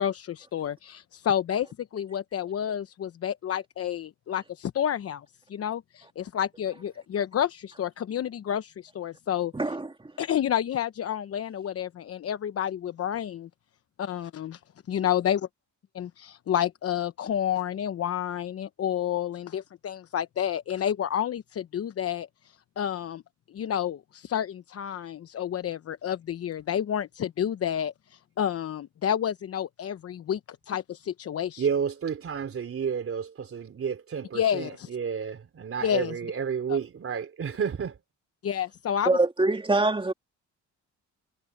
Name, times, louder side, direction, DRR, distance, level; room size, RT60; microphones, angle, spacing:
voice 1, 0.0-9.8 10.2-13.5 14.0-14.6 14.9-15.4 16.0-23.2 23.5-31.7 34.3-34.9 35.8-36.2 36.7-36.8 38.4-39.2, left 9 dB, 50° left, 0.8 m, -30 dB
voice 2, 9.5-9.9 39.1-40.1, right 2 dB, 15° right, 2.3 m, -24 dB
voice 3, 31.6-38.0, right 7 dB, 45° right, 3.2 m, -31 dB
cardioid pair, 90°, 30 cm